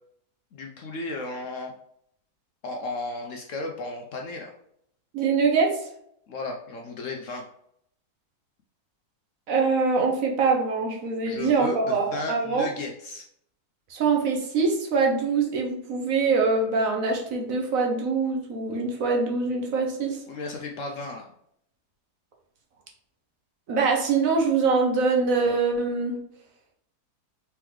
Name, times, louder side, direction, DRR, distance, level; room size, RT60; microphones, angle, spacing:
voice 1, 0.5-1.7 2.6-4.5 6.3-7.5 11.2-13.2 20.3-21.3, left 3 dB, 65° left, 2 dB, 0.8 m, -34 dB
voice 2, 5.1-5.8 9.5-12.7 13.9-20.2 23.7-26.2, right 4 dB, 60° right, 1 dB, 1.2 m, -24 dB
4.3 x 3.8 x 3.0 m, 0.71 s
omnidirectional pair, 1.7 m